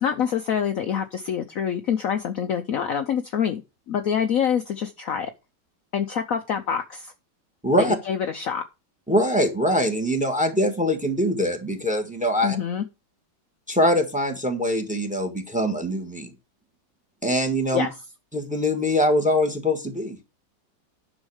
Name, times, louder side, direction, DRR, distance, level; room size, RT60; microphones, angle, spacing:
voice 1, 0.0-3.6 3.9-5.3 5.9-7.1 7.8-8.6 12.4-12.8 17.7-17.9, left 8 dB, 60° left, 7 dB, 0.9 m, -26 dB
voice 2, 7.6-8.0 9.1-12.6 13.7-16.3 17.2-17.9 18.3-20.2, equal, 5° right, 6 dB, 1.4 m, -23 dB
10.0 x 6.2 x 4.8 m, 0.28 s
omnidirectional pair, 1.9 m